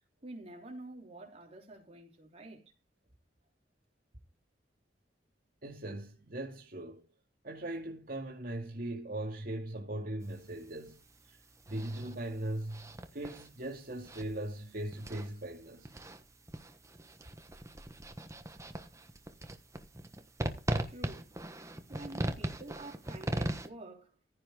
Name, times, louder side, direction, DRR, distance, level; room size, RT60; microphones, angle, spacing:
voice 1, 0.2-2.6 20.9-21.3 21.9-24.2, right 2 dB, 35° right, 3.4 m, -48 dB
voice 2, 5.6-7.0 7.4-11.0 11.3-11.4 11.7-15.9, right 1 dB, 55° right, 2.4 m, -39 dB
sound 1, 10.2-23.7, right 1 dB, 15° right, 1.2 m, -40 dB
15.0 x 5.9 x 5.0 m
head